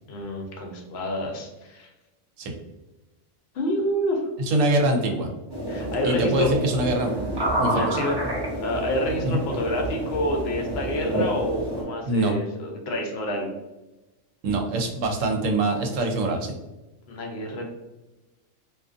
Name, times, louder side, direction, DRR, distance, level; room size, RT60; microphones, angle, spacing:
voice 1, 0.1-1.9 3.5-4.2 5.7-6.5 7.7-8.2 8.6-13.5 17.1-17.7, equal, 60° left, 1 dB, 0.8 m, -28 dB
voice 2, 4.5-5.3 6.0-7.1 7.6-8.0 9.2-9.4 12.0-12.3 14.4-16.5, right 2 dB, 75° right, 3 dB, 0.9 m, -24 dB
sound 1, 5.5-11.8, right 1 dB, 25° right, 0.7 m, -28 dB
2.4 x 2.4 x 2.4 m, 1.0 s
omnidirectional pair, 1.4 m